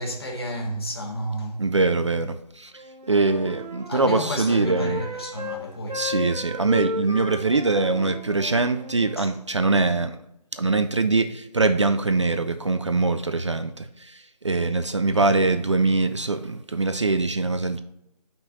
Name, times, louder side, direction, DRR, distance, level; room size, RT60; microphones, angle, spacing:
voice 1, 0.0-1.7 3.9-6.1 9.2-9.3 15.1-15.3, equal, 35° left, 1.1 m, -31 dB
voice 2, 1.6-2.8 3.1-5.0 5.9-10.2 10.5-17.8, right 3 dB, 45° right, 0.4 m, -23 dB
Wind instrument woodwind instrument, 2.7-5.6 5.9-9.2, left 2 dB, 80° right, 1.2 m, -34 dB
5.8 x 3.9 x 5.1 m
figure-of-eight pair, 155°, 21 cm